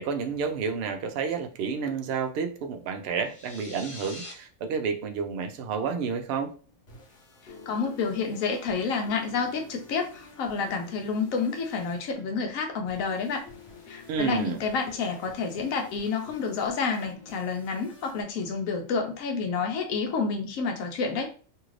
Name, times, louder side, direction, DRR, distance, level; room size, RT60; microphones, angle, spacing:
voice 1, 0.0-6.5 14.1-14.6, right 5 dB, 65° right, 0.6 m, -30 dB
sound 1, 3.2-4.3, left 1 dB, 40° left, 0.5 m, -43 dB
sound 2, 6.7-19.5, left 4 dB, 55° left, 1.0 m, -50 dB
voice 2, 7.7-13.4 13.9-21.3, left 5 dB, 85° left, 1.1 m, -29 dB
2.8 x 2.5 x 3.1 m
omnidirectional pair, 1.4 m